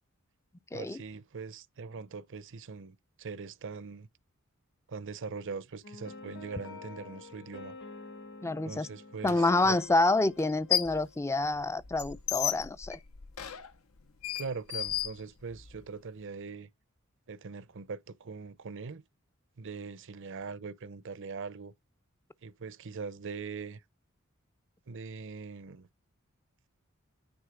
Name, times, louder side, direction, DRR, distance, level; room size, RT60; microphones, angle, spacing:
voice 1, 0.7-4.1 4.9-7.8 8.6-9.8 14.3-16.7 17.3-19.0 19.6-21.7 22.4-23.8 24.9-25.9, right 5 dB, 60° right, 0.7 m, -41 dB
sound 1, 5.8-11.5, left 4 dB, 55° left, 1.6 m, -48 dB
voice 2, 8.4-8.9 9.2-13.0, left 2 dB, 15° left, 0.4 m, -28 dB
sound 2, 9.2-9.3 10.4-11.1 11.4-15.8, left 10 dB, 75° left, 0.8 m, -34 dB
9.8 x 3.8 x 5.0 m
head